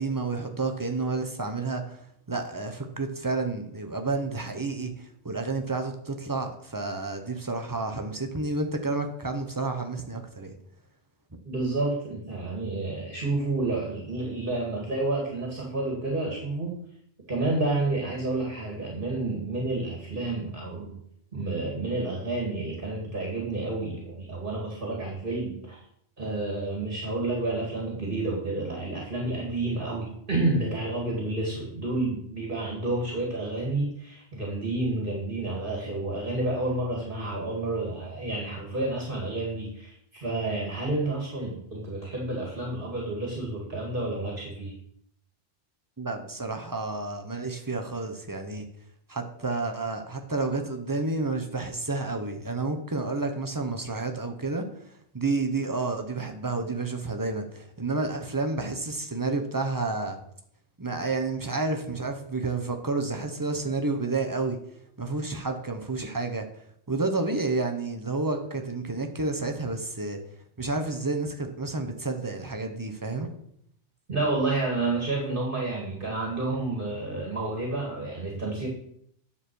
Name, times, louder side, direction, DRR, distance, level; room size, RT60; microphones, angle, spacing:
voice 1, 0.0-2.0 2.3-10.5 46.0-48.7 49.1-54.6 55.1-60.2 60.8-64.6 65.0-70.2 70.6-73.3, right 3 dB, 20° right, 4 dB, 1.1 m, -30 dB
voice 2, 11.4-16.8 17.3-21.0 21.3-25.8 26.2-44.7 74.1-78.7, right 2 dB, 50° right, -2 dB, 2.3 m, -30 dB
9.7 x 7.1 x 4.7 m, 0.69 s
omnidirectional pair, 1.2 m